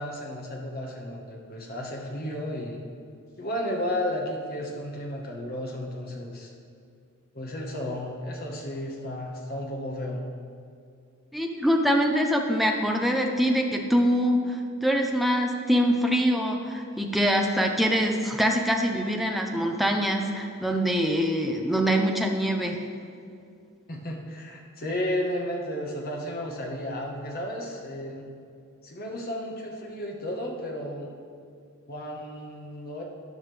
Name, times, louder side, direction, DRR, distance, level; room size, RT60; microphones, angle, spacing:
voice 1, 0.0-2.9 3.4-6.5 7.3-10.2 23.9-28.3 28.8-31.1 31.9-33.0, left 1 dB, 45° left, -1 dB, 1.6 m, -33 dB
voice 2, 11.3-22.8, equal, ahead, 2 dB, 0.8 m, -24 dB
13.0 x 9.9 x 3.5 m, 2.4 s
head